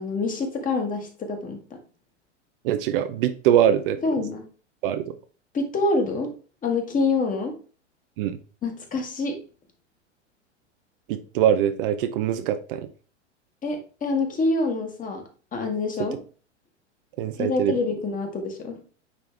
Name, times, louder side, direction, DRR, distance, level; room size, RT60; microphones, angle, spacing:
voice 1, 0.0-1.8 4.0-4.4 5.5-6.3 6.6-7.6 8.6-9.4 13.6-15.2 15.5-16.2 17.4-18.8, left 3 dB, 20° left, 4 dB, 1.5 m, -26 dB
voice 2, 2.6-4.0 4.8-5.0 8.2-8.4 11.1-12.9 17.2-17.7, right 10 dB, 50° right, 9 dB, 0.6 m, -22 dB
9.2 x 3.4 x 3.3 m, 0.38 s
figure-of-eight pair, 95°, 36 cm